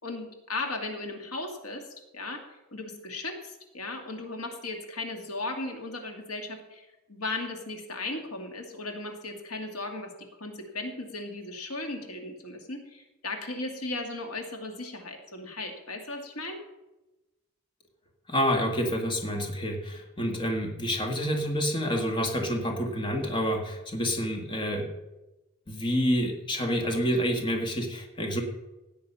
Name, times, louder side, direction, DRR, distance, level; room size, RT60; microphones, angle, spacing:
voice 1, 0.0-1.8 2.1-2.4 2.7-10.1 10.4-16.6, left 2 dB, 90° left, 4 dB, 2.4 m, -36 dB
voice 2, 18.3-24.9 25.7-28.4, equal, 20° left, 2 dB, 1.8 m, -28 dB
16.0 x 9.3 x 5.7 m, 1.0 s
head